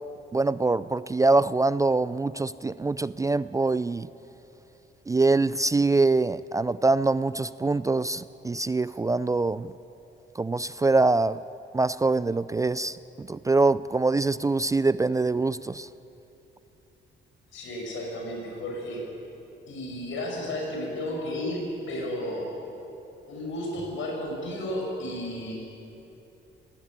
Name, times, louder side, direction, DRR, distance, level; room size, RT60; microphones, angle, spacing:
voice 1, 0.3-4.1 5.1-9.7 10.4-11.4 11.7-15.9, right 3 dB, 15° right, 17 dB, 0.3 m, -24 dB
voice 2, 17.5-19.0 19.7-22.5 23.3-25.7, left 1 dB, 75° left, 0 dB, 6.4 m, -33 dB
18.0 x 14.5 x 10.0 m, 3.0 s
cardioid pair, 90°, 20 cm